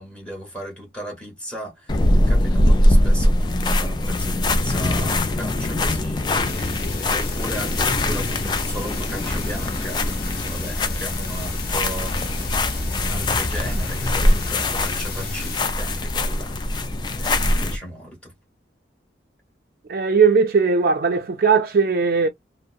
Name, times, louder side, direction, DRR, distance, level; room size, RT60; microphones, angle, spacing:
voice 1, 0.0-6.6 6.8-12.6 12.8-18.3, equal, 5° left, 1.3 m, -36 dB
sound 1, 1.9-17.8, left 1 dB, 25° left, 0.3 m, -22 dB
sound 2, 6.5-15.6, left 3 dB, 50° left, 0.9 m, -34 dB
voice 2, 19.9-22.3, right 5 dB, 55° right, 0.4 m, -18 dB
2.7 x 2.0 x 2.3 m
head